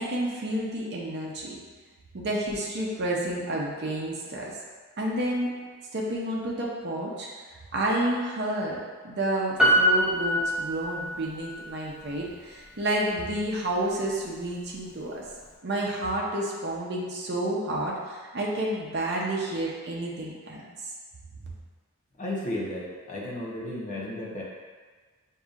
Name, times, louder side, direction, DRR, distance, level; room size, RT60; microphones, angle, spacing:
voice 1, 0.0-1.6 2.1-4.5 5.0-5.5 5.9-7.3 7.7-8.8 9.0-15.2 15.6-20.6, right 1 dB, 50° right, -3 dB, 0.7 m, -30 dB
Piano, 9.6-11.4 11.7-11.8, equal, 5° right, 0.7 m, -23 dB
voice 2, 22.2-24.4, left 1 dB, 35° left, -4 dB, 0.7 m, -33 dB
6.6 x 2.7 x 2.4 m, 1.4 s
head